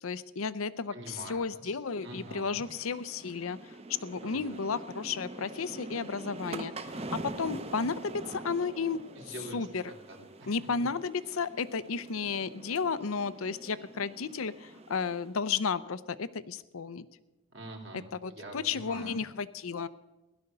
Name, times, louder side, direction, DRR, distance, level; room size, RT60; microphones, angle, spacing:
voice 1, 0.0-3.8 4.0-9.0 9.5-9.8 10.5-17.1 17.9-19.9, left 5 dB, 80° left, 16 dB, 0.6 m, -33 dB
voice 2, 0.9-1.8 2.0-2.6 4.2-4.6 8.9-10.6 17.5-19.2, right 1 dB, 60° right, 0 dB, 2.8 m, -46 dB
sound 1, 1.8-15.3, right 2 dB, 30° right, 0.8 m, -44 dB
16.5 x 11.5 x 6.7 m, 1.1 s
head